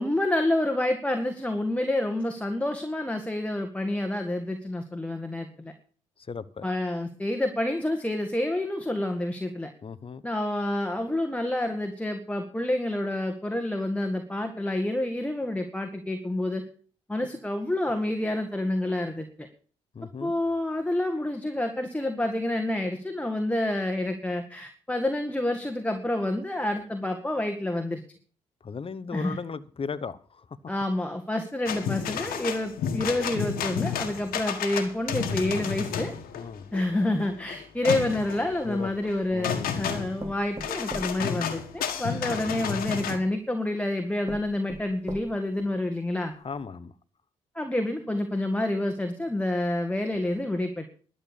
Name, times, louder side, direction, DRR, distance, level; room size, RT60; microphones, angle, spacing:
voice 1, 0.0-5.7 6.6-9.7 10.2-16.7 17.1-19.5 20.2-28.0 29.1-29.4 30.7-36.1 36.7-46.3 47.6-50.9, left 1 dB, 10° left, 5 dB, 1.8 m, -28 dB
voice 2, 6.3-6.7 9.8-10.2 19.9-20.3 28.6-30.5 36.3-36.7 38.6-38.9 39.3-39.9 46.4-46.9, left 5 dB, 35° left, 15 dB, 1.0 m, -36 dB
sound 1, 31.7-43.2, left 7 dB, 70° left, 1.6 m, -32 dB
sound 2, 38.5-39.4 40.2-42.2 43.1-43.2 43.8-43.9 44.3-45.6 46.1-46.2 46.5-46.6, right 1 dB, 25° right, 2.8 m, -42 dB
12.0 x 6.9 x 8.5 m, 0.43 s
hypercardioid pair, 40°, 16 cm